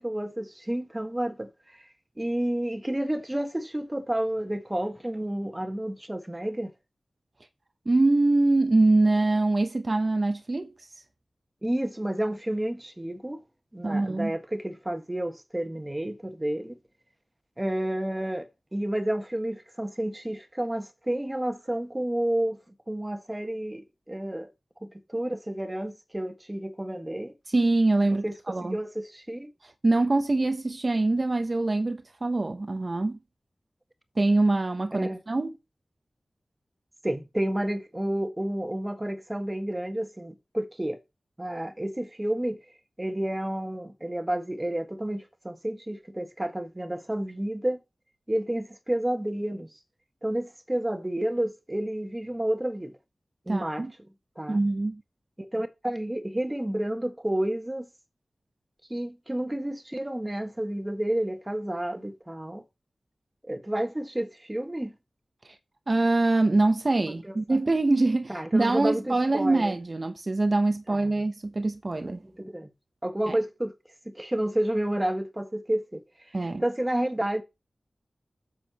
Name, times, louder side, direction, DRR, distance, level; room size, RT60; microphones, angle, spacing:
voice 1, 0.0-1.9 2.2-6.7 11.6-13.4 13.7-16.8 17.6-22.6 22.9-24.5 24.8-27.3 28.1-29.5 34.9-35.2 37.0-41.0 41.4-42.6 43.0-47.8 48.3-49.8 50.2-52.9 53.5-53.8 54.4-54.6 55.4-57.9 58.9-62.6 63.5-64.9 67.2-67.3 68.3-69.7 70.9-71.1 72.2-72.7 73.0-73.7 74.0-77.4, right 1 dB, 15° right, 1.5 m, -30 dB
voice 2, 7.9-10.7 13.8-14.3 27.5-28.8 29.6-33.2 34.2-35.5 53.5-53.9 54.5-55.0 65.4-65.6 65.9-72.2 73.3-73.4 76.3-76.6, right 2 dB, 40° right, 0.8 m, -24 dB
11.0 x 7.6 x 2.9 m
wide cardioid pair, 90°, 0 cm